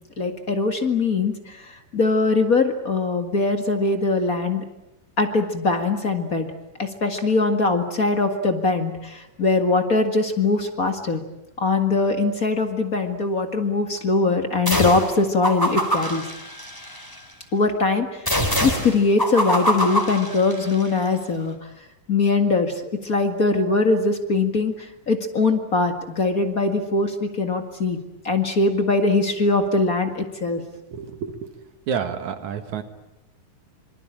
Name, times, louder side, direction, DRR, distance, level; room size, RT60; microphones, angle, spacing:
voice 1, 0.2-4.6 5.2-6.5 6.8-11.2 11.6-16.3 17.5-18.3 18.6-21.5 22.1-22.7 23.0-28.0 28.2-30.6, left 3 dB, 35° left, 6 dB, 1.7 m, -22 dB
sound 1, 14.7-15.1 15.4-17.2 18.3-20.9, equal, 5° left, 3.8 m, -24 dB
voice 2, 30.9-31.5 31.9-32.8, right 7 dB, 65° right, 8 dB, 2.8 m, -29 dB
26.0 x 25.0 x 8.9 m, 0.90 s
omnidirectional pair, 3.8 m